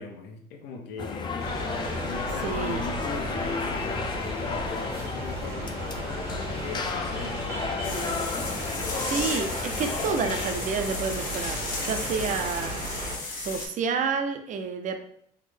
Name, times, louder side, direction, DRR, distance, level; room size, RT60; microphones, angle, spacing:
voice 1, 0.0-1.6 2.0-8.5, left 4 dB, 80° left, 3 dB, 0.6 m, -39 dB
sound 1, 1.0-10.5, left 4 dB, 25° left, 0.4 m, -33 dB
sound 2, 1.4-13.2, right 1 dB, 65° right, 1.0 m, -35 dB
voice 2, 2.4-2.9 9.0-12.8 13.3-15.0, right 5 dB, 50° right, 7 dB, 0.5 m, -29 dB
sound 3, 7.8-13.7, left 3 dB, 55° left, 0.9 m, -35 dB
3.6 x 2.0 x 3.2 m, 0.67 s
cardioid pair, 110°, 17 cm